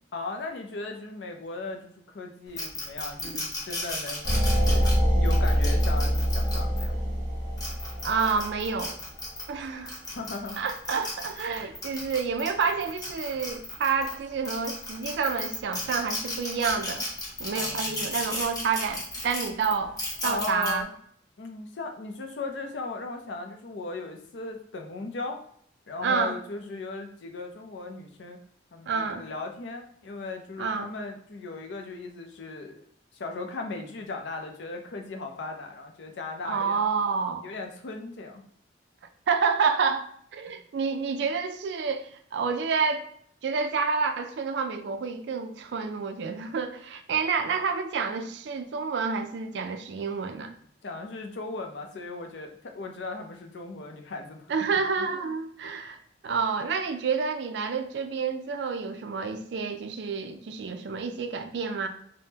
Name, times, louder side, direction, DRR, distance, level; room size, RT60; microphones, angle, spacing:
voice 1, 0.1-6.9 10.1-10.6 17.5-18.1 20.2-20.9 21.4-25.4 25.9-28.4 28.7-32.8 33.1-36.8 37.4-38.4 50.8-54.4 55.0-55.3, left 3 dB, 70° left, 0.5 m, -37 dB
sound 1, 2.6-6.8 7.4-9.5 9.9-14.1 14.4-20.7, left 1 dB, 20° left, 0.7 m, -34 dB
sound 2, 4.2-9.0, equal, 45° right, 1.1 m, -24 dB
voice 2, 8.0-9.0 9.5-10.0 10.6-17.1 17.4-20.0 20.2-20.9 26.0-26.4 28.9-29.3 30.6-30.9 36.5-37.5 39.3-43.1 43.4-50.5 54.5-56.0 56.2-61.9, right 5 dB, 65° right, 0.3 m, -29 dB
3.5 x 2.1 x 2.8 m
head